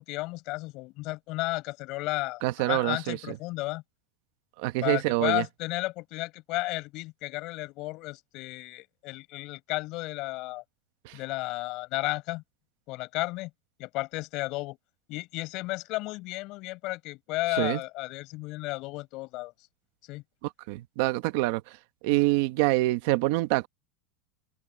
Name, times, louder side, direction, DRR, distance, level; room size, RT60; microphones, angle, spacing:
voice 1, 0.0-3.8 4.8-10.6 11.1-12.4 12.9-13.5 13.8-14.8 15.1-19.5 20.0-20.2 22.1-22.2, left 21 dB, 40° left, 7.1 m, -33 dB
voice 2, 2.4-3.2 4.6-5.4 11.0-11.2 17.6-17.8 20.7-21.8 22.0-23.7, right 19 dB, 55° right, 1.1 m, -26 dB
open air
supercardioid pair, 175°, 0 cm